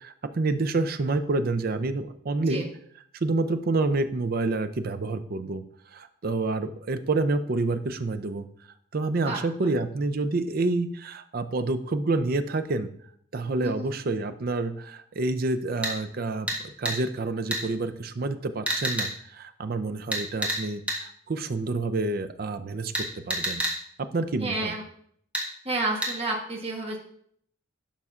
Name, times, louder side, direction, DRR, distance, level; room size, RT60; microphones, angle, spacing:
voice 1, 0.0-2.6 3.2-5.6 5.9-8.5 8.9-12.9 13.3-23.6 24.1-24.7, right 3 dB, 45° right, 10 dB, 0.5 m, -28 dB
sound 1, 15.8-16.0 16.5-16.6 16.8-17.0 17.5-17.6 18.7-19.1 20.1-20.6 20.9-21.0 22.9-23.8 25.3-25.5 26.0-26.1, right 1 dB, 5° right, 1.4 m, -28 dB
voice 2, 24.4-24.8 25.6-27.0, right 2 dB, 30° right, 0 dB, 1.1 m, -30 dB
11.0 x 5.4 x 2.4 m, 0.64 s
head